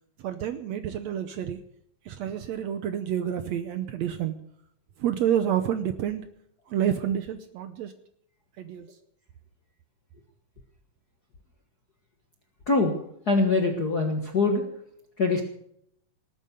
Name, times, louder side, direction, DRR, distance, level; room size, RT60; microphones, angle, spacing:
voice 1, 0.2-1.6 2.1-4.4 5.0-6.3 6.7-7.9 8.6-9.0, right 10 dB, 70° right, 10 dB, 1.8 m, -29 dB
voice 2, 13.3-14.6 15.2-15.4, left 3 dB, 45° left, 4 dB, 1.3 m, -23 dB
18.5 x 9.3 x 6.8 m, 0.70 s
omnidirectional pair, 3.8 m